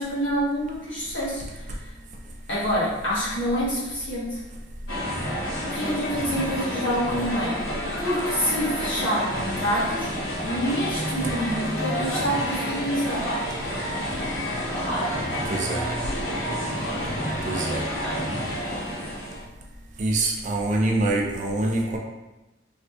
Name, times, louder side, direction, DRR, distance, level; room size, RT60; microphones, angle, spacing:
voice 1, 0.0-1.4 2.5-4.4 5.7-7.6 8.0-10.1 10.4-13.2, equal, 70° left, -8 dB, 1.3 m, -27 dB
sound 1, 4.9-19.5, equal, 90° left, 1.0 m, -29 dB
voice 2, 15.5-15.9 17.4-17.8 20.0-22.0, right 2 dB, 40° right, 0 dB, 0.4 m, -25 dB
3.1 x 2.8 x 2.4 m, 1.0 s
head